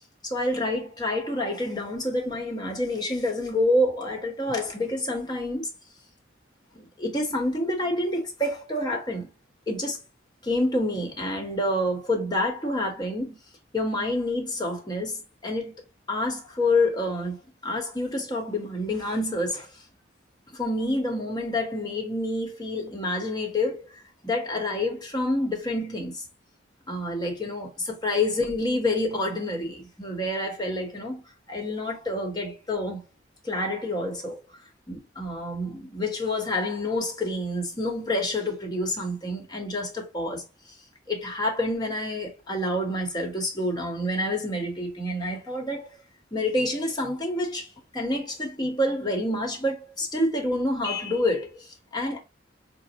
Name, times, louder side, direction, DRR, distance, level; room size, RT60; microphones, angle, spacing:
voice 1, 0.2-5.7 6.7-9.3 9.7-10.0 10.4-13.4 13.7-15.7 16.1-19.8 20.5-26.2 26.9-31.2 31.5-33.0 33.4-34.4 34.9-40.8 41.1-45.9 46.3-52.2, left 1 dB, 20° left, 1.0 m, -28 dB
5.0 x 2.0 x 2.8 m
head